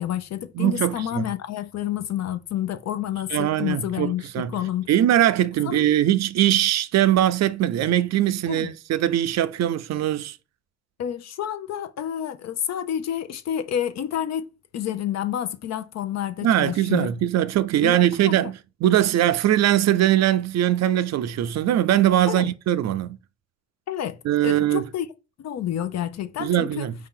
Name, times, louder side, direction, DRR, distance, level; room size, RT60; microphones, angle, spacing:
voice 1, 0.0-4.9 5.6-5.9 8.5-8.7 11.0-17.1 17.8-18.0 18.2-18.5 22.3-22.5 23.9-24.2 24.4-25.1 25.4-26.9, left 10 dB, 60° left, 0.6 m, -29 dB
voice 2, 0.6-1.3 3.3-4.5 4.9-10.4 16.4-23.2 24.2-24.8 26.4-26.9, right 12 dB, 60° right, 0.5 m, -21 dB
4.7 x 2.8 x 3.7 m
cardioid pair, 90°, 30 cm